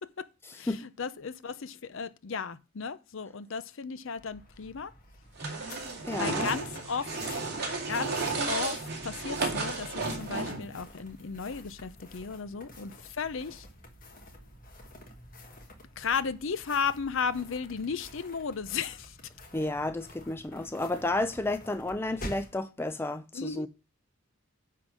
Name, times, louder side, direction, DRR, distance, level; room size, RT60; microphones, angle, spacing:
voice 1, 0.5-4.9 6.2-7.2 7.9-13.7 16.0-19.2 23.3-23.7, left 6 dB, 60° left, 0.6 m, -35 dB
sound 1, 4.2-22.6, left 1 dB, 40° left, 1.5 m, -49 dB
sound 2, 5.4-10.8, right 3 dB, 50° right, 2.3 m, -33 dB
voice 2, 6.0-6.5 19.5-23.7, left 2 dB, 10° left, 0.4 m, -31 dB
9.8 x 3.9 x 6.1 m
head